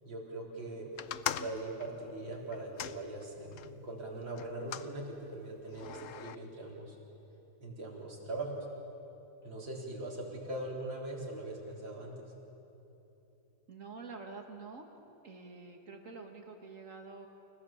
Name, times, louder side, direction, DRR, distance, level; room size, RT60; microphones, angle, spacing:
voice 1, 0.0-0.9 1.3-6.9 7.6-8.6 9.4-12.3, right 2 dB, 75° right, -3 dB, 4.6 m, -41 dB
sound 1, 1.0-3.7 4.4-4.9 5.7-6.4, left 10 dB, 90° left, 0.7 m, -41 dB
voice 2, 13.7-14.9 15.2-17.3, right 4 dB, 40° right, 3 dB, 2.2 m, -47 dB
29.5 x 16.0 x 7.4 m, 2.9 s
omnidirectional pair, 2.1 m